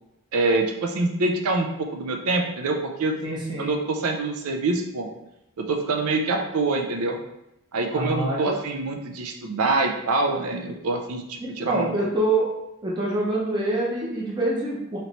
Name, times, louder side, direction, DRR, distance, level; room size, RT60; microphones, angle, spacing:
voice 1, 0.3-3.2 3.6-5.1 5.6-7.2 7.7-12.0, right 3 dB, 85° right, 4 dB, 0.5 m, -25 dB
voice 2, 3.2-3.7 7.9-8.4 11.4-12.5 12.8-15.0, right 2 dB, 20° right, -5 dB, 0.7 m, -25 dB
3.2 x 2.9 x 4.0 m, 0.86 s
head